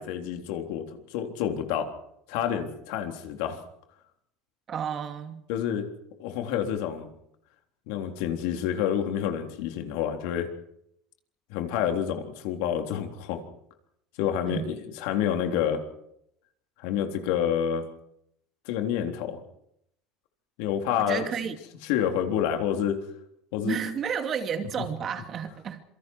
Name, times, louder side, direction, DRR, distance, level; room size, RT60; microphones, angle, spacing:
voice 1, 0.0-1.9 2.3-3.6 5.5-5.9 6.2-7.1 7.9-10.5 11.5-13.4 14.2-15.8 16.8-17.9 18.7-19.4 20.6-21.3 21.8-23.0 23.5-23.8, left 9 dB, 75° left, 5 dB, 3.6 m, -28 dB
voice 2, 4.7-5.4 14.5-14.7 21.0-21.6 23.6-25.8, right 7 dB, 35° right, 7 dB, 2.5 m, -31 dB
27.5 x 24.0 x 4.7 m, 0.75 s
cardioid pair, 150°, 0 cm